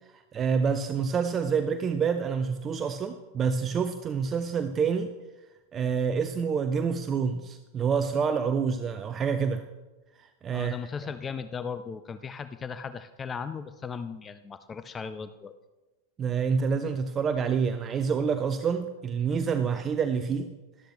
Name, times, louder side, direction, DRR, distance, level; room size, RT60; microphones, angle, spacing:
voice 1, 0.3-5.1 5.7-9.6 10.2-10.8 16.2-20.5, right 6 dB, 25° right, 9 dB, 0.6 m, -27 dB
voice 2, 10.5-15.5, left 6 dB, 20° left, 12 dB, 0.5 m, -37 dB
13.0 x 12.5 x 3.2 m, 1.1 s
figure-of-eight pair, 90°, 0 cm